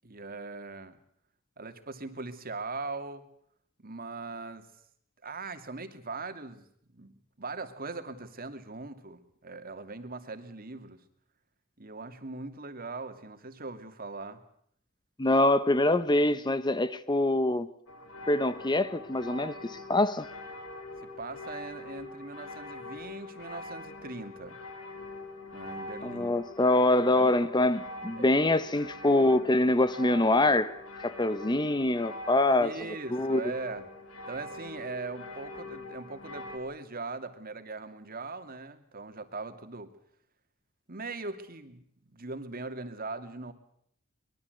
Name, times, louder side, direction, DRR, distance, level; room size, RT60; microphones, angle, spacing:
voice 1, 0.0-1.0 1.6-3.3 3.8-4.7 5.2-6.6 6.9-11.0 11.8-14.4 21.0-24.6 25.5-26.4 27.2-27.3 28.2-28.3 32.6-33.9 34.3-39.9 40.9-43.5, right 3 dB, 45° right, 2.6 m, -40 dB
voice 2, 15.2-17.7 18.3-20.3 26.0-32.7 33.1-33.4, left 2 dB, 20° left, 1.0 m, -25 dB
sound 1, 17.9-36.6, left 2 dB, 85° left, 5.3 m, -44 dB
24.5 x 22.0 x 8.0 m
head